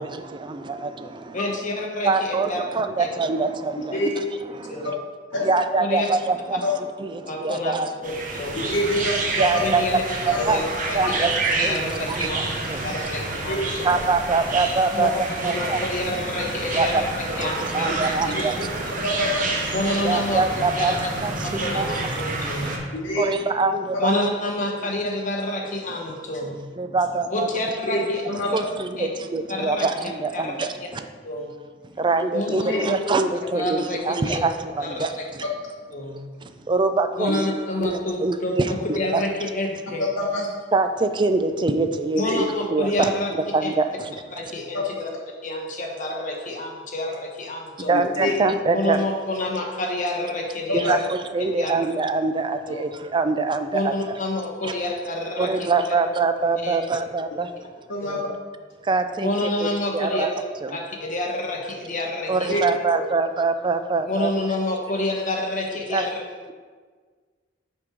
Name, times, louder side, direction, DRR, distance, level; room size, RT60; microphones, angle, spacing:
voice 1, 0.0-1.4 2.0-4.9 5.4-8.2 8.5-8.6 9.4-9.8 10.3-10.6 10.9-13.1 13.8-15.1 15.4-16.1 16.7-17.0 17.3-18.9 20.0-22.1 23.2-24.1 26.8-27.5 28.5-31.1 32.0-35.4 36.4-37.3 37.8-39.2 40.7-43.1 43.5-44.2 47.9-49.0 50.7-54.1 54.6-54.8 55.4-57.5 58.8-59.7 59.9-60.3 60.6-60.8 62.3-64.3 65.9-66.1, right 3 dB, 25° right, 9 dB, 0.4 m, -24 dB
voice 2, 1.3-2.6 3.0-3.1 4.7-4.9 5.8-6.1 7.3-7.7 8.0-8.7 9.6-10.0 10.4-10.6 11.1-11.3 11.7-12.4 12.8-13.7 14.9-15.1 15.4-17.1 17.4-18.0 19.7-21.1 21.4-22.8 24.0-26.6 27.3-28.2 28.5-28.6 29.0-29.1 29.5-29.9 30.3-30.5 31.2-31.5 32.3-33.2 33.5-34.0 34.3-34.4 34.8-35.2 35.9-36.2 37.2-40.1 42.1-43.3 43.6-43.7 44.3-45.1 45.4-48.0 48.7-51.0 51.6-51.8 52.7-52.8 53.7-55.5 55.9-56.0 56.6-56.8 58.0-58.2 59.2-60.3 60.7-62.6 62.9-63.0 64.1-66.2, left 1 dB, 45° left, 0 dB, 1.1 m, -28 dB
voice 3, 3.8-4.1 4.8-4.9 5.3-5.4 6.6-6.7 8.6-9.1 10.3-10.5 11.0-11.1 13.5-13.6 18.3-18.4 19.0-19.4 22.9-23.3 27.9-28.0 28.3-28.5 32.5-32.8 37.3-37.4 40.0-40.5 42.1-42.3 44.7-44.8 47.9-48.3 50.8-50.9 57.9-58.2 62.5-62.6, left 1 dB, 90° left, -3 dB, 0.9 m, -26 dB
sound 1, 8.0-22.8, right 2 dB, 45° right, 1.0 m, -28 dB
6.0 x 4.7 x 5.0 m, 1.5 s
head